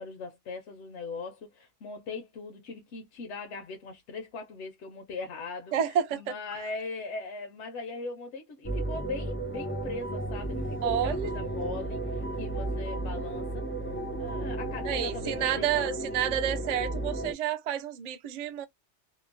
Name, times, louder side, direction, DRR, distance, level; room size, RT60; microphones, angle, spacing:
voice 1, 0.0-13.6 14.2-16.3, left 3 dB, 70° left, 0.9 m, -40 dB
voice 2, 5.7-6.2 10.8-11.3 14.8-18.7, right 9 dB, 60° right, 0.4 m, -29 dB
sound 1, 8.6-17.3, right 2 dB, 20° left, 0.4 m, -33 dB
2.9 x 2.0 x 2.5 m
omnidirectional pair, 1.2 m